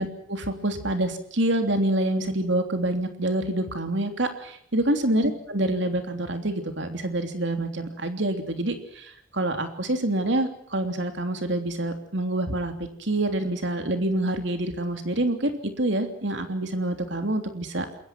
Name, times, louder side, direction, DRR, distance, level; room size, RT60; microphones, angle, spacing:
voice 1, 0.0-18.0, right 1 dB, 60° right, 6 dB, 3.2 m, -27 dB
28.0 x 22.0 x 6.0 m, 0.64 s
head